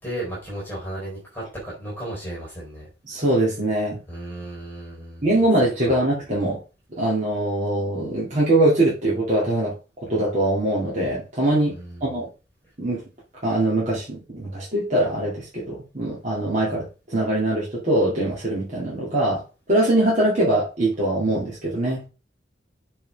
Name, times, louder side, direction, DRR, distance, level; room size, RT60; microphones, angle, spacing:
voice 1, 0.0-2.9 4.1-5.2 5.9-6.0 11.7-12.1, right 1 dB, 10° left, -7 dB, 3.9 m, -34 dB
voice 2, 3.0-4.0 5.2-6.6 7.0-11.7 12.0-12.3 12.8-13.0 13.4-19.4 19.7-22.1, right 1 dB, 40° right, -6 dB, 2.7 m, -22 dB
6.8 x 5.7 x 3.6 m, 0.32 s
head